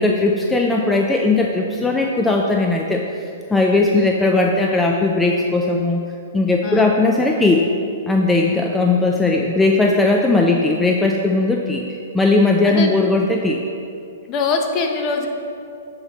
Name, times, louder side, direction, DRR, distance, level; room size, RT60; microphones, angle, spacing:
voice 1, 0.0-3.0 3.5-6.0 6.3-7.7 8.1-11.9 12.1-13.6, left 2 dB, 10° left, 0 dB, 0.4 m, -18 dB
voice 2, 14.3-15.3, left 4 dB, 35° left, 4 dB, 0.8 m, -23 dB
7.6 x 4.0 x 4.2 m, 2.5 s
hypercardioid pair, 130°, 0 cm